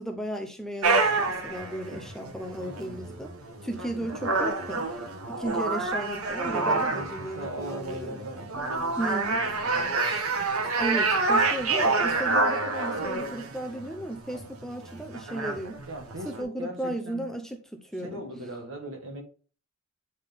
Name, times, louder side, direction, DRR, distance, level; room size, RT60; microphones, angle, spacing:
voice 1, 0.0-3.3 3.6-4.9 5.3-8.3 9.0-9.4 10.8-15.8 16.2-18.2, right 1 dB, ahead, 0.6 m, -35 dB
sound 1, 0.8-16.4, right 3 dB, 80° right, 1.1 m, -28 dB
voice 2, 2.6-3.2 6.4-10.1 11.1-11.4 15.9-17.3 18.0-19.2, right 1 dB, 60° right, 1.7 m, -40 dB
8.2 x 3.9 x 3.5 m
head